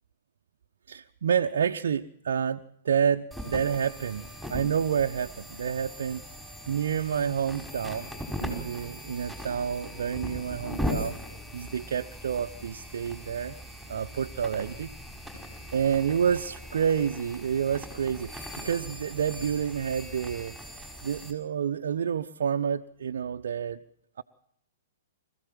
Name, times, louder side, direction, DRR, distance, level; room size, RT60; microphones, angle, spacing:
voice 1, 0.9-6.2 6.7-8.1 8.4-11.1 11.5-13.5 13.9-14.9 15.7-20.6 21.0-23.8, right 7 dB, 65° right, 5 dB, 0.8 m, -29 dB
sound 1, 3.3-21.3, equal, ahead, 5.3 m, -39 dB
25.0 x 15.5 x 7.7 m, 0.75 s
figure-of-eight pair, 110°, 0 cm